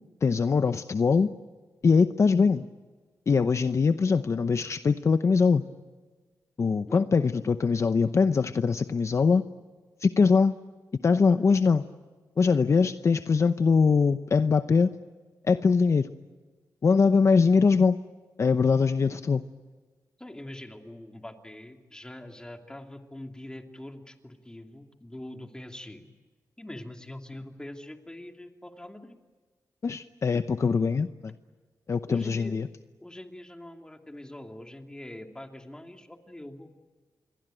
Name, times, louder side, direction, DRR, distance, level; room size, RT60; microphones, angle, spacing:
voice 1, 0.2-1.3 1.8-2.7 3.3-5.6 6.6-9.5 10.0-10.5 11.0-11.8 12.4-14.9 15.4-16.1 16.8-18.0 18.4-19.4 29.8-31.3 31.9-32.7, left 5 dB, 45° left, 11 dB, 0.8 m, -22 dB
voice 2, 6.9-7.5 20.2-26.1 26.6-29.2 32.1-32.6 33.0-36.7, left 1 dB, 10° left, 4 dB, 2.8 m, -43 dB
27.0 x 23.0 x 9.1 m, 1.4 s
cardioid pair, 90°, 7 cm